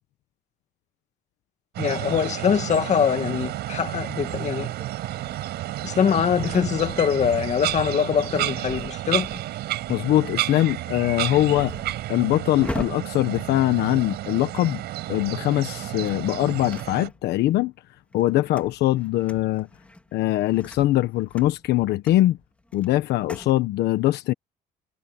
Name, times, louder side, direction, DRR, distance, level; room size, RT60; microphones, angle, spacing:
sound 1, 1.7-17.1, right 15 dB, 80° right, 5.9 m, -31 dB
voice 1, 1.8-4.7 5.8-9.4, left 7 dB, 45° left, 2.3 m, -23 dB
sound 2, 4.8-14.6 15.3-17.5 17.9-23.6, left 1 dB, 5° left, 2.7 m, -42 dB
voice 2, 9.9-11.7 12.1-14.8 15.1-17.7 18.1-19.7 20.1-22.4 22.7-24.3, left 15 dB, 80° left, 1.2 m, -22 dB
cardioid pair, 110°, 17 cm